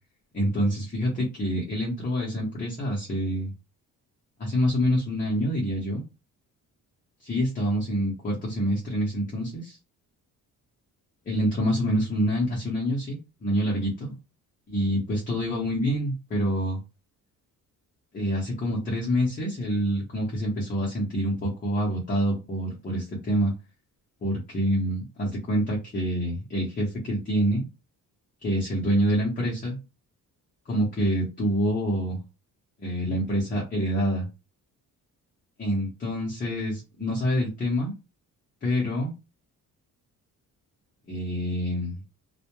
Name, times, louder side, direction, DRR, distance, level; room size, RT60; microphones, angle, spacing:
voice 1, 0.3-3.5 4.4-6.0 7.2-9.8 11.3-14.1 14.7-16.8 18.1-23.5 24.2-27.6 28.4-29.8 30.7-32.2 32.8-34.3 35.6-37.9 38.6-39.1 41.1-41.9, equal, 25° left, -4 dB, 0.6 m, -26 dB
2.1 x 2.0 x 2.9 m, 0.27 s
wide cardioid pair, 175°, 35 cm